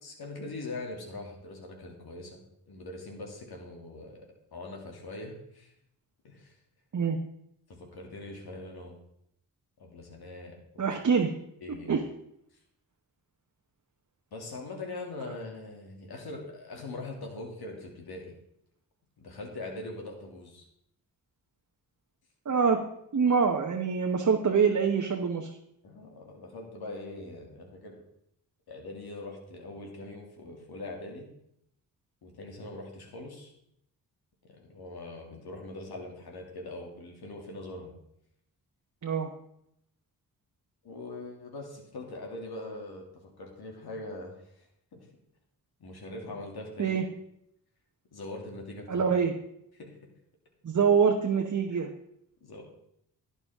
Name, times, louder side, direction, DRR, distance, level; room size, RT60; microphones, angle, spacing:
voice 1, 0.0-4.3 4.5-5.7 6.2-6.6 7.7-9.0 9.8-10.9 11.6-11.9 14.3-18.3 19.2-20.7 25.8-28.0 28.7-31.3 32.2-33.5 34.4-37.9 40.8-45.1 45.8-47.0 48.1-49.0 49.8-49.9 52.4-52.6, left 2 dB, 70° left, 1 dB, 2.6 m, -42 dB
voice 2, 10.8-11.3 11.9-12.0 22.4-22.8 23.1-25.5 39.0-39.3 46.8-47.0 48.9-49.4 50.6-51.9, right 6 dB, 45° right, 2 dB, 1.1 m, -25 dB
11.0 x 8.9 x 3.6 m, 0.76 s
supercardioid pair, 45°, 40 cm